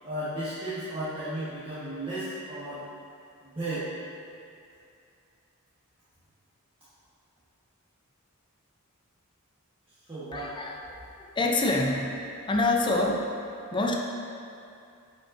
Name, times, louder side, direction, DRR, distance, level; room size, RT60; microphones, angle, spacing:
voice 1, 0.0-2.8 3.4-3.8 10.0-10.5, right 1 dB, 25° right, -13 dB, 1.2 m, -34 dB
voice 2, 10.3-12.2 12.5-13.3 13.7-14.0, left 2 dB, 20° left, 0 dB, 0.4 m, -26 dB
8.6 x 5.2 x 2.6 m, 2.5 s
head